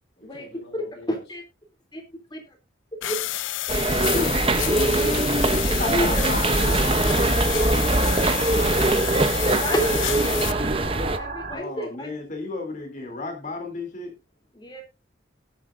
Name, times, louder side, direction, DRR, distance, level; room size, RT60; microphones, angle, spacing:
voice 1, 0.2-1.2 6.1-10.7, left 1 dB, 55° left, -2 dB, 7.7 m, -42 dB
voice 2, 1.1-1.4 1.9-2.0 2.3-2.4 3.0-3.2 5.7-6.3 9.6-10.7 11.1-12.1 14.5-14.8, equal, 20° left, 3 dB, 3.0 m, -29 dB
sound 1, 3.0-10.5, left 15 dB, 80° left, 0.5 m, -30 dB
sound 2, 3.7-11.2, right 2 dB, 30° right, 0.8 m, -22 dB
voice 3, 3.9-6.4 11.5-14.1, left 3 dB, 40° left, 3 dB, 3.1 m, -32 dB
sound 3, 6.5-11.5, right 3 dB, 45° right, 3.4 m, -34 dB
19.0 x 7.6 x 2.6 m, 0.27 s
head